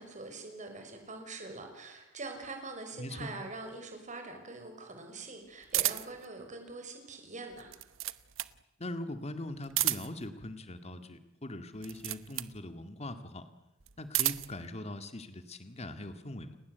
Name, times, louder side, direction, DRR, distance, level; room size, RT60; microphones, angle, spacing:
voice 1, 0.0-7.7, right 3 dB, 40° right, 4 dB, 5.9 m, -44 dB
voice 2, 3.0-3.3 8.8-13.5 14.0-16.6, left 1 dB, 35° left, 10 dB, 2.0 m, -41 dB
sound 1, 5.7-6.2 7.5-8.6 9.6-10.3 11.8-12.6 13.8-14.6, right 16 dB, 85° right, 1.0 m, -32 dB
30.0 x 20.0 x 8.1 m, 0.89 s
head